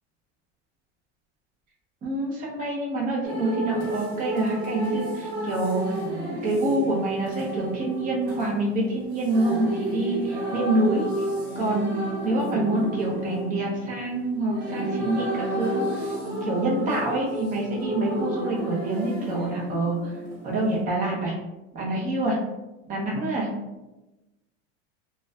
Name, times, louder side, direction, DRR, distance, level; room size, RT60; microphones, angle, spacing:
voice 1, 2.0-6.0 6.4-11.1 11.6-12.0 12.2-16.1 16.4-20.1 20.4-21.3 21.7-22.4 22.9-23.5, right 2 dB, 25° right, -3 dB, 0.5 m, -26 dB
sound 1, 3.2-20.8, right 1 dB, 40° right, 1.0 m, -31 dB
2.5 x 2.2 x 2.2 m, 1.0 s
supercardioid pair, 140°, 36 cm